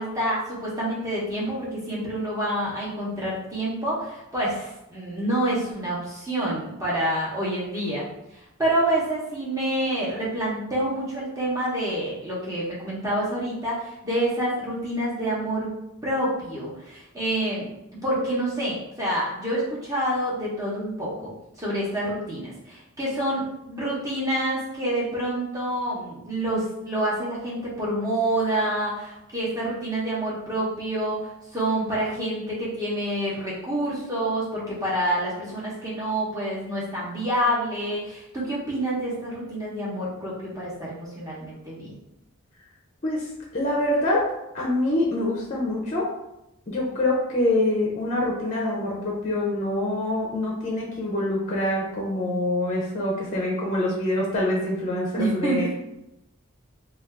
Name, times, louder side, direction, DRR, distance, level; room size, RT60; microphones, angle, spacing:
voice 1, 0.0-8.1 8.6-15.7 16.0-17.7 18.0-21.3 21.6-41.9 55.2-55.7, right 1 dB, 15° right, -7 dB, 0.9 m, -27 dB
voice 2, 43.5-44.2 44.5-46.0 46.7-55.7, left 1 dB, 35° left, -3 dB, 0.5 m, -25 dB
2.6 x 2.3 x 3.3 m, 0.88 s
head